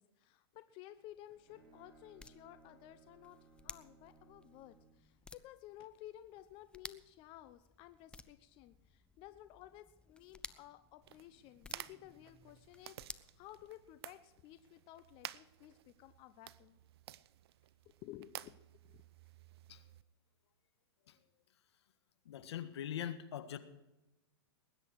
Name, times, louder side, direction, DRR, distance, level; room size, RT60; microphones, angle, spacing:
voice 1, 0.0-16.8 18.0-18.6 18.8-19.0, left 13 dB, 40° left, 11 dB, 0.8 m, -55 dB
sound 1, 1.0-14.2, left 3 dB, 5° left, 0.6 m, -57 dB
Bowed string instrument, 1.0-5.1, right 4 dB, 10° right, 6.8 m, -64 dB
sound 2, 11.0-20.0, right 13 dB, 65° right, 0.7 m, -53 dB
voice 2, 22.2-23.6, left 10 dB, 75° left, 11 dB, 1.6 m, -42 dB
20.0 x 10.0 x 4.8 m, 0.97 s
hypercardioid pair, 130°, 14 cm